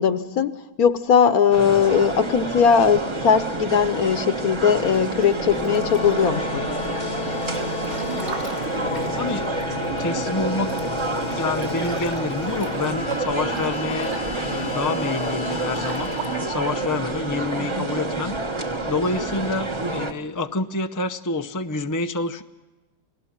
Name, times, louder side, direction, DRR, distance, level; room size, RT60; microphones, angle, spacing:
voice 1, 0.0-6.6 17.6-17.9, left 7 dB, 70° left, 12 dB, 1.5 m, -19 dB
Messe - Gang durch Halle deutsch, 1.5-20.1, right 2 dB, 20° right, 1.2 m, -28 dB
Breathing / Bathtub (filling or washing) / Splash splatter, 4.8-6.3 6.8-10.0 10.3-10.4 10.6-14.8 15.4-16.3, right 3 dB, 45° right, 3.1 m, -41 dB
sound 1, 5.3-17.6, left 4 dB, 40° left, 1.1 m, -33 dB
voice 2, 9.2-9.5 10.0-10.7 11.3-18.3 18.9-22.4, left 3 dB, 25° left, 8 dB, 0.4 m, -28 dB
29.0 x 19.0 x 7.4 m, 1.2 s
omnidirectional pair, 1.7 m